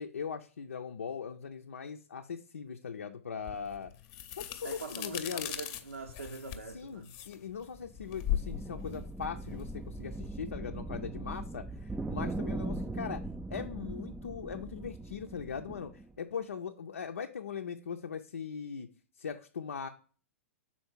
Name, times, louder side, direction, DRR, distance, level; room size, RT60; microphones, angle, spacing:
voice 1, 0.0-3.9 4.4-5.5 6.7-13.2 13.5-18.9 19.2-19.9, left 6 dB, 80° left, 0.5 m, -40 dB
sound 1, 3.5-10.2, left 12 dB, 40° left, 0.7 m, -39 dB
voice 2, 4.6-7.1, right 4 dB, 85° right, 0.8 m, -43 dB
sound 2, 7.6-16.1, right 2 dB, 5° right, 0.3 m, -40 dB
5.6 x 4.3 x 4.4 m
hypercardioid pair, 110°, 7 cm